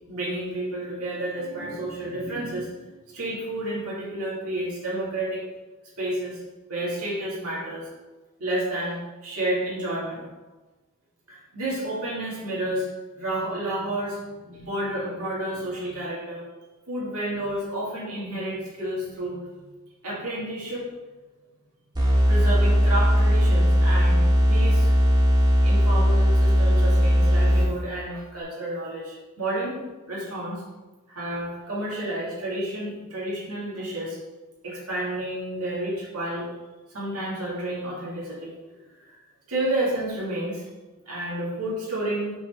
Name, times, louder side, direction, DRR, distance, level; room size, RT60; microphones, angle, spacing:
voice 1, 0.1-5.4 6.0-6.4 6.7-7.9 8.4-10.3 11.3-12.9 13.2-14.2 14.4-16.4 16.9-19.4 20.0-20.9 22.3-24.9 25.6-30.6 31.1-34.2 34.6-36.5 36.9-38.5 39.0-39.2 39.5-40.6 41.1-42.3, right 1 dB, 80° right, -6 dB, 2.3 m, -30 dB
sound 1, 21.9-28.0, equal, 20° right, 1.8 m, -19 dB
5.7 x 4.3 x 5.6 m, 1.2 s
head